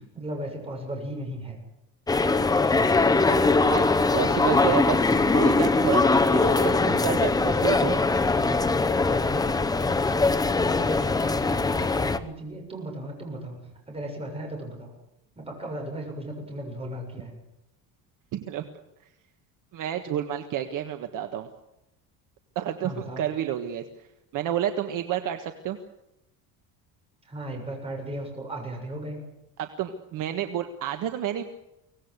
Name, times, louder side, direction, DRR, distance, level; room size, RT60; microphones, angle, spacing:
voice 1, 0.1-1.6 2.5-3.1 11.2-13.6 13.9-14.9 15.4-17.4 22.8-23.3 27.3-29.2, right 1 dB, 15° right, 1 dB, 7.1 m, -36 dB
sound 1, 2.1-12.2, left 3 dB, 10° left, 0.8 m, -22 dB
voice 2, 3.7-8.0 18.5-18.6 19.7-21.5 22.5-23.8 24.3-25.8 29.6-31.4, right 10 dB, 50° right, 6 dB, 1.5 m, -30 dB
24.0 x 18.5 x 8.1 m, 0.89 s
cardioid pair, 170°, 40 cm